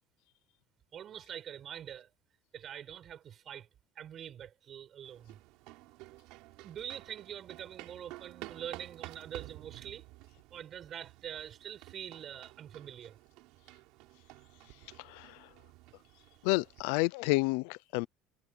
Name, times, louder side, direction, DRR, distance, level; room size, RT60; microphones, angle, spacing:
voice 1, 0.9-2.1 2.5-3.7 4.0-5.4 6.6-10.1 10.5-13.2, right 9 dB, 35° right, 5.7 m, -45 dB
sound 1, 5.0-16.8, right 21 dB, 70° right, 4.2 m, -52 dB
voice 2, 15.0-15.5 16.4-18.1, left 24 dB, 80° left, 0.6 m, -30 dB
cardioid pair, 150°, 0 cm